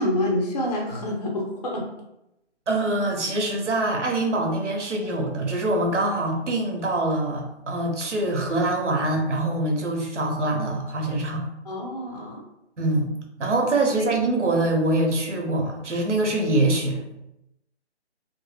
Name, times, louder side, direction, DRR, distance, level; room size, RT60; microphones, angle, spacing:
voice 1, 0.0-1.9 11.7-12.4, left 1 dB, 35° left, -1 dB, 0.4 m, -27 dB
voice 2, 2.7-11.4 12.8-13.1 13.4-17.0, right 2 dB, 90° right, 1 dB, 0.8 m, -24 dB
2.2 x 2.0 x 3.1 m, 0.88 s
figure-of-eight pair, 155°, 35 cm